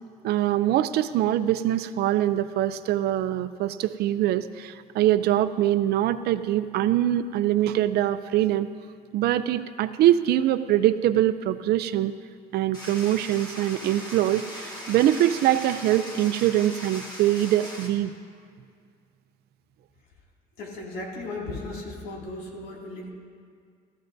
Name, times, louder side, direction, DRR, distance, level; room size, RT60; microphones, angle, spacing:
voice 1, 0.2-8.7 9.1-12.1 12.5-18.1, right 13 dB, 70° right, 12 dB, 0.5 m, -23 dB
sound 1, 12.7-17.9, equal, 25° left, 2.2 m, -39 dB
voice 2, 20.6-23.1, left 2 dB, 75° left, -2 dB, 2.4 m, -36 dB
15.0 x 14.0 x 2.6 m, 2.1 s
cardioid pair, 110°, 17 cm